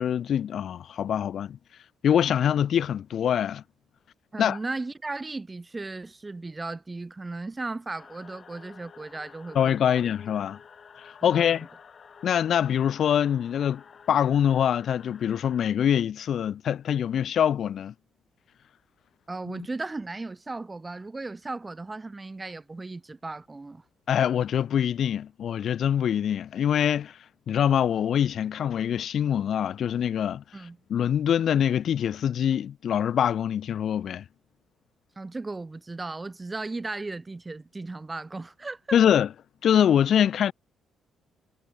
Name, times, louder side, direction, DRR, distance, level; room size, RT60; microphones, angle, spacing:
voice 1, 0.0-1.6 2.0-3.6 4.4-4.6 9.5-10.6 11.0-11.7 12.2-13.8 14.1-17.9 19.5-19.7 24.1-27.2 27.5-30.4 30.9-34.2 38.9-39.3 39.6-40.5, left 9 dB, 65° left, 0.4 m, -24 dB
voice 2, 4.3-10.1 11.2-11.5 19.3-23.8 30.5-30.8 35.2-39.0, right 3 dB, 20° right, 4.1 m, -36 dB
sound 1, 7.9-15.7, left 6 dB, 45° left, 4.3 m, -51 dB
cardioid pair, 90°, 0 cm